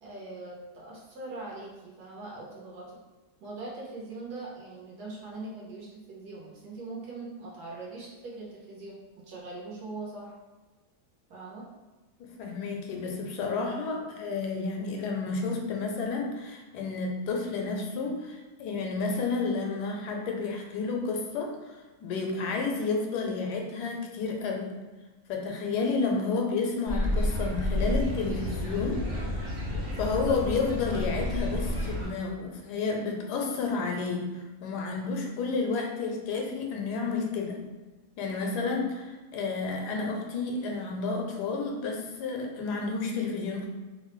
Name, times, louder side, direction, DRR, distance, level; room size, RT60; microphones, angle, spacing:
voice 1, 0.0-2.9 3.4-9.0 9.3-10.3 11.3-11.6 13.8-14.0, right 2 dB, 80° right, -4 dB, 1.4 m, -41 dB
voice 2, 12.2-24.7 25.3-29.0 29.3-29.4 30.0-34.3 34.6-37.6 38.2-43.7, left 4 dB, 85° left, 1 dB, 1.1 m, -31 dB
sound 1, 26.9-32.1, left 1 dB, 45° right, 0.9 m, -30 dB
3.2 x 2.1 x 3.0 m, 1.2 s
omnidirectional pair, 1.7 m